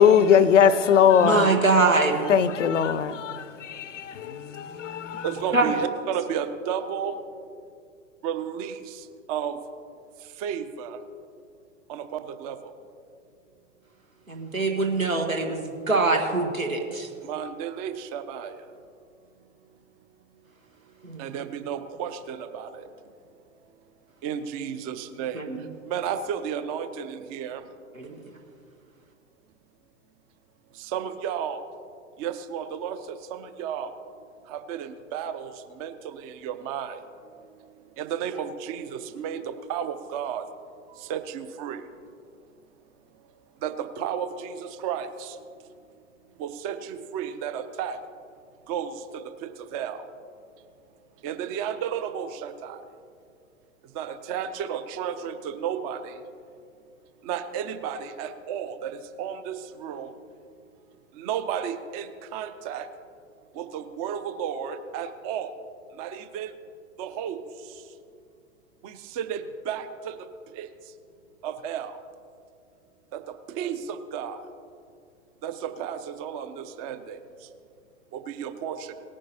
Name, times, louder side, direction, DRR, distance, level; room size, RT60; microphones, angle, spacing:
voice 1, 0.0-1.6 2.3-5.2, left 8 dB, 65° left, 0.6 m, -20 dB
voice 2, 1.2-2.2 5.5-5.7 14.3-17.1 21.0-21.2 25.3-25.6 28.0-28.1, right 3 dB, 85° right, 1.5 m, -23 dB
voice 3, 5.2-7.2 8.2-9.6 10.4-11.0 11.9-12.7 17.2-18.6 21.2-22.9 24.2-25.4 25.9-27.6 30.8-31.6 32.2-33.9 34.5-37.0 38.0-40.4 41.0-41.8 43.6-45.4 46.4-48.0 48.7-50.0 51.2-52.8 53.9-56.2 57.2-60.1 61.1-62.9 63.5-65.5 66.0-66.5 67.0-67.4 68.8-70.1 70.5-70.7 71.4-71.9 73.1-74.4 75.4-77.2 78.1-78.9, right 8 dB, 30° right, 0.6 m, -33 dB
18.5 x 9.8 x 2.8 m
figure-of-eight pair, 100°, 40 cm